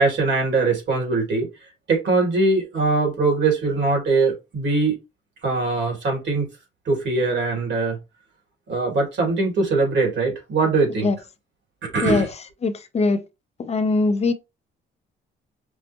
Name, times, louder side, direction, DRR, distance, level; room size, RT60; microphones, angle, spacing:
voice 1, 0.0-1.5 1.9-5.0 5.4-6.5 6.9-8.0 8.7-11.1 11.8-12.3, right 3 dB, 65° right, 2.2 m, -21 dB
voice 2, 12.6-13.2 13.6-14.3, left 3 dB, 35° left, 0.6 m, -21 dB
5.3 x 2.1 x 2.8 m
cardioid pair, 90°, 20 cm